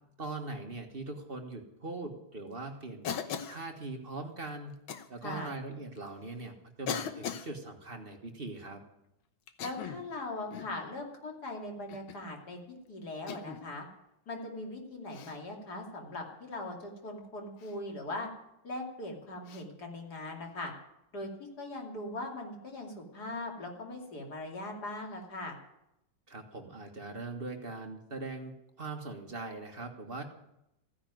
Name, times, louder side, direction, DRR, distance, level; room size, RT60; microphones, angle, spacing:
voice 1, 0.2-4.8 5.1-8.8 26.3-30.2, right 3 dB, 30° right, 4 dB, 1.6 m, -41 dB
Cough, 3.0-3.6 4.9-5.1 6.0-6.1 6.9-7.5 9.5-10.1 10.5-10.8 11.9-12.2 13.3-13.6 15.1-15.4 17.6-17.8 19.5-19.6, left 8 dB, 85° left, 1.9 m, -38 dB
voice 2, 5.2-5.5 9.6-12.6 12.9-13.9 14.3-18.3 18.6-20.7 21.1-21.3 21.6-25.6, left 2 dB, 50° left, 1 dB, 3.3 m, -40 dB
15.5 x 10.0 x 9.2 m, 0.85 s
omnidirectional pair, 2.2 m